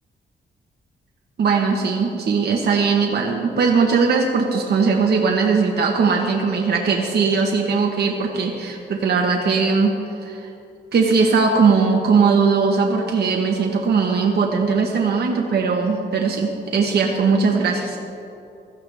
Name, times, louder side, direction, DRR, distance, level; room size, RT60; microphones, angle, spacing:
voice 1, 1.4-9.9 10.2-10.5 10.9-18.0, right 5 dB, 65° right, 0 dB, 1.2 m, -19 dB
17.0 x 14.0 x 3.5 m, 2.7 s
wide cardioid pair, 135°, 19 cm